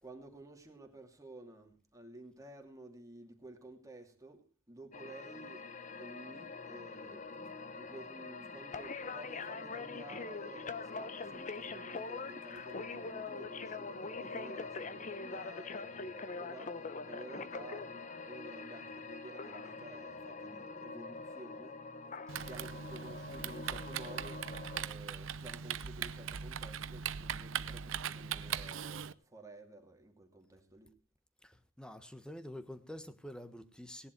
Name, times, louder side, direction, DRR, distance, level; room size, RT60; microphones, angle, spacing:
voice 1, 0.0-5.6 6.0-7.2 7.7-17.9 18.2-21.8 22.3-30.9, right 2 dB, 15° right, 2.6 m, -52 dB
sound 1, 4.9-24.9, left 4 dB, 40° left, 0.9 m, -44 dB
Typing, 22.3-29.1, right 8 dB, 80° right, 0.7 m, -40 dB
voice 2, 31.4-34.1, equal, 5° left, 1.3 m, -47 dB
18.5 x 10.5 x 4.6 m
head